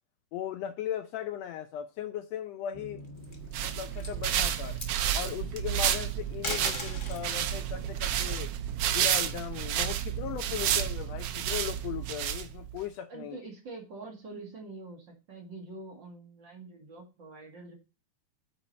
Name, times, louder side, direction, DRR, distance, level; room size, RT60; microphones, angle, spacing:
voice 1, 0.3-3.0 3.6-4.8 5.1-8.5 8.9-13.4, left 10 dB, 75° left, 1.6 m, -37 dB
sound 1, 2.7-12.2, equal, 15° right, 0.8 m, -53 dB
sound 2, 3.0-3.5 3.9-4.2 4.6-5.3 6.3-7.3 8.8-10.0, left 3 dB, 55° left, 0.5 m, -39 dB
sound 3, 3.3-12.8, right 10 dB, 75° right, 1.5 m, -31 dB
voice 2, 13.1-17.8, right 3 dB, 45° right, 2.2 m, -45 dB
8.8 x 4.6 x 4.1 m
omnidirectional pair, 3.3 m